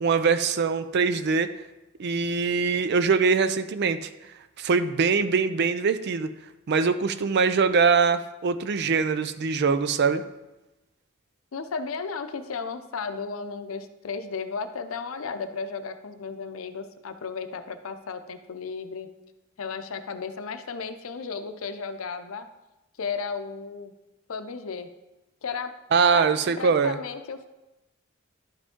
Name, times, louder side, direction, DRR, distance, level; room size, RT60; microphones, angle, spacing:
voice 1, 0.0-1.5 2.0-4.1 4.6-6.3 6.7-10.2 25.9-27.0, right 5 dB, 55° right, 12 dB, 0.4 m, -23 dB
voice 2, 11.5-19.1 19.6-22.5 23.0-23.9 24.3-24.9 25.4-25.7 26.1-26.3 26.6-27.5, left 5 dB, 90° left, 9 dB, 0.6 m, -34 dB
11.5 x 5.0 x 3.7 m, 1.0 s
head